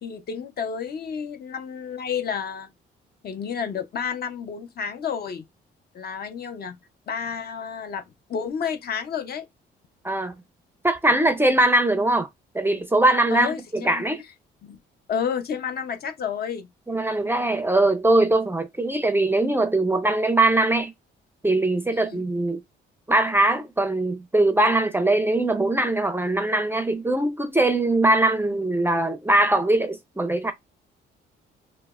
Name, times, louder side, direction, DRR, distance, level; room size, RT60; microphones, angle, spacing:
voice 1, 0.0-2.7 3.2-5.4 5.9-6.8 7.1-8.0 8.3-9.5 13.3-14.0 14.6-14.8 15.1-16.7 21.9-22.2, left 7 dB, 50° left, 0.6 m, -30 dB
voice 2, 10.8-12.3 12.5-14.2 16.9-20.9 21.4-22.6 23.1-30.5, right 2 dB, 10° right, 0.4 m, -21 dB
3.2 x 2.0 x 2.3 m
cardioid pair, 90°, 20 cm